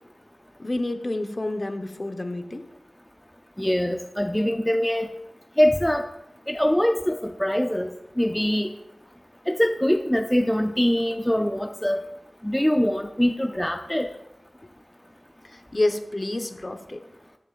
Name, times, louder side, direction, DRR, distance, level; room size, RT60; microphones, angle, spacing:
voice 1, 0.6-2.7 15.5-17.0, left 2 dB, 35° left, 7 dB, 1.0 m, -28 dB
voice 2, 3.6-5.1 5.6-6.0 6.5-7.9 8.2-8.7 9.5-12.0 12.4-14.1, equal, 10° left, 4 dB, 0.6 m, -23 dB
20.5 x 7.3 x 2.5 m, 0.93 s
wide cardioid pair, 70°, 0 cm